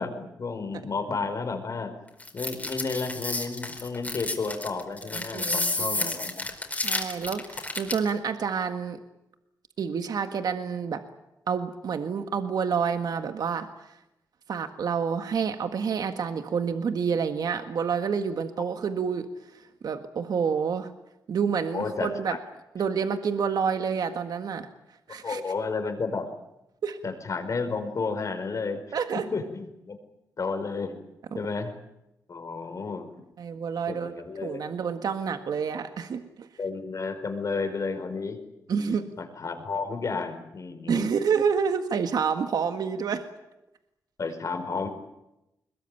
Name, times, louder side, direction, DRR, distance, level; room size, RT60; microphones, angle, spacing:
voice 1, 0.0-1.9 2.3-6.5 21.7-22.4 25.2-26.3 27.0-28.8 29.1-30.0 30.4-31.0 31.3-31.7 32.3-33.1 33.9-34.6 36.6-38.4 38.9-41.1 44.2-44.9, left 4 dB, 55° left, 7 dB, 4.8 m, -32 dB
sound 1, 2.2-8.1, left 2 dB, 25° left, 4.6 m, -31 dB
voice 2, 5.1-6.2 6.8-9.0 9.8-11.0 11.5-13.7 14.5-19.3 19.8-20.9 21.3-22.4 22.8-24.7 25.1-25.4 26.8-27.0 28.9-29.3 31.3-31.4 33.4-36.5 38.7-39.0 40.9-43.3, right 6 dB, 75° right, 7 dB, 1.7 m, -28 dB
22.0 x 21.5 x 9.1 m, 0.91 s
cardioid pair, 85°, 7 cm